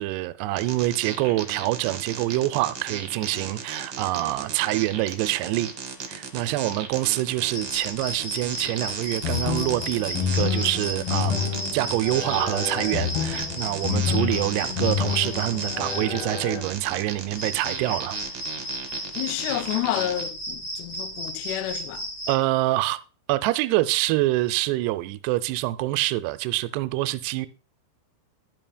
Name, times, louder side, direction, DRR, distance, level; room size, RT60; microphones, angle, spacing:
voice 1, 0.0-5.7 6.1-18.2 22.3-23.0 23.3-27.5, right 17 dB, 85° right, 2.6 m, -26 dB
sound 1, 0.6-20.2, right 6 dB, 65° right, 1.4 m, -36 dB
sound 2, 7.5-22.4, right 1 dB, 40° left, 2.4 m, -34 dB
sound 3, 9.2-16.6, left 7 dB, 70° left, 2.6 m, -29 dB
voice 2, 19.2-22.1, left 14 dB, 90° left, 2.7 m, -29 dB
11.0 x 9.0 x 2.2 m
omnidirectional pair, 4.7 m